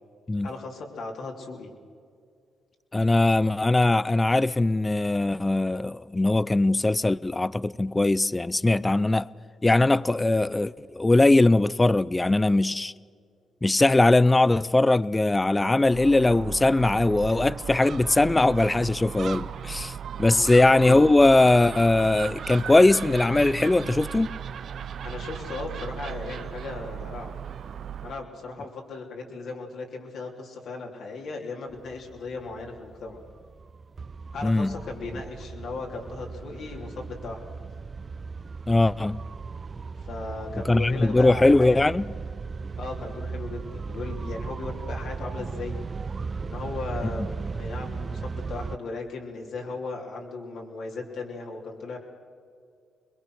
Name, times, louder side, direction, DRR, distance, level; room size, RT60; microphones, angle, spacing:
voice 1, 0.4-1.7 20.3-20.5 25.0-27.3 28.0-33.2 34.3-37.5 40.0-41.8 42.8-45.8 46.4-52.0, left 3 dB, 70° left, 3.4 m, -37 dB
voice 2, 2.9-9.3 9.6-12.9 13.6-19.9 20.2-24.4 34.4-34.8 38.7-39.2 40.6-42.1, left 2 dB, 20° left, 0.5 m, -20 dB
Gull seagull, 15.8-28.2, right 8 dB, 65° right, 0.8 m, -36 dB
sound 1, 31.7-48.8, right 4 dB, 40° right, 0.5 m, -37 dB
22.5 x 21.5 x 6.4 m
cardioid pair, 70°, 0 cm